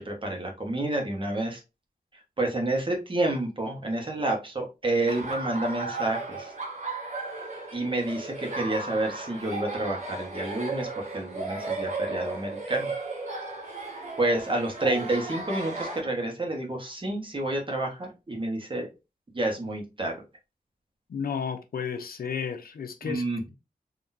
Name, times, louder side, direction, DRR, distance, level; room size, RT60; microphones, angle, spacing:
voice 1, 0.0-1.6 2.4-6.5 7.7-12.9 14.2-18.9 19.3-20.2 23.0-23.5, right 2 dB, 35° right, 1.3 m, -29 dB
Laughter, 5.1-16.0, right 3 dB, 50° right, 1.2 m, -35 dB
voice 2, 21.1-23.2, left 6 dB, 75° left, 0.7 m, -32 dB
4.0 x 2.9 x 2.7 m
wide cardioid pair, 95°, 15 cm